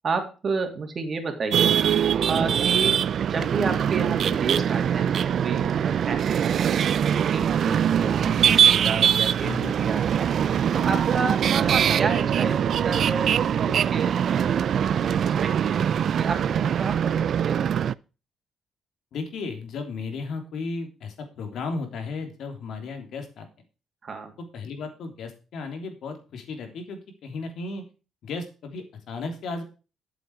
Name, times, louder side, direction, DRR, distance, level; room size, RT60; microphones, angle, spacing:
voice 1, 0.0-15.8 16.2-17.7 24.0-24.3, right 4 dB, 40° right, 5 dB, 2.9 m, -31 dB
sound 1, 1.5-17.9, right 8 dB, 60° right, 0.4 m, -22 dB
voice 2, 9.4-9.7 19.1-23.5 24.5-27.8 28.2-29.6, left 4 dB, 70° left, 6 dB, 3.2 m, -34 dB
12.0 x 8.0 x 4.9 m, 0.33 s
cardioid pair, 100°, 0 cm